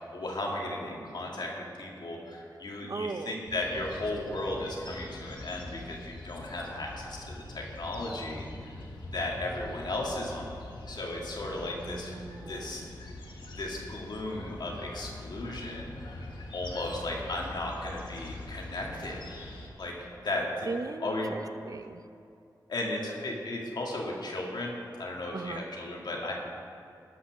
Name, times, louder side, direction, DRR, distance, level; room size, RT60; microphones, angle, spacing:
voice 1, 0.0-8.7 9.1-10.5 10.9-12.1 12.4-12.9 13.6-16.3 16.5-19.2 19.8-20.7 21.0-21.3 22.7-26.3, left 2 dB, 70° left, -1 dB, 2.0 m, -35 dB
voice 2, 2.9-3.3 11.4-12.9 20.7-22.0 25.3-25.6, right 3 dB, 50° right, 10 dB, 0.5 m, -38 dB
sound 1, 3.5-19.7, left 2 dB, 85° left, 1.3 m, -44 dB
13.0 x 5.8 x 5.9 m, 2.5 s
cardioid pair, 55°, 8 cm